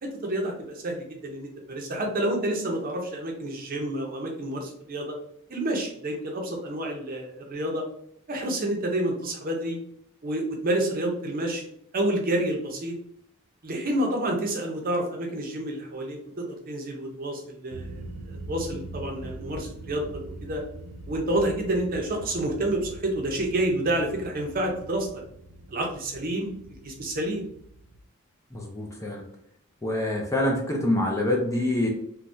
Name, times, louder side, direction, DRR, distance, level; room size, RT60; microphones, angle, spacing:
voice 1, 0.0-5.2 5.5-7.8 8.3-9.8 10.2-11.6 11.9-13.0 13.6-20.0 20.4-20.6 21.1-25.2 25.7-26.5 26.8-27.4, right 1 dB, 40° right, 1 dB, 0.7 m, -29 dB
sound 1, 17.7-28.0, right 1 dB, 75° right, 0.3 m, -42 dB
voice 2, 28.5-29.2 29.8-31.9, left 1 dB, 15° left, -1 dB, 0.5 m, -26 dB
3.4 x 2.2 x 2.6 m, 0.69 s
head